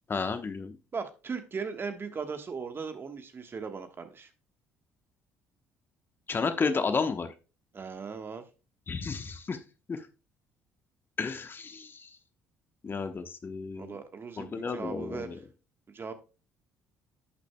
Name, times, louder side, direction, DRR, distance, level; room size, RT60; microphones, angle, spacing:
voice 1, 0.1-0.8 6.3-7.3 8.9-9.6 9.9-10.1 11.2-12.1 12.8-14.0 14.4-15.3, left 4 dB, 35° left, 8 dB, 1.0 m, -32 dB
voice 2, 0.9-4.3 7.7-8.4 13.7-15.3 15.9-16.1, right 5 dB, 35° right, 7 dB, 1.3 m, -38 dB
11.0 x 6.4 x 2.2 m, 0.32 s
hypercardioid pair, 60°, 6 cm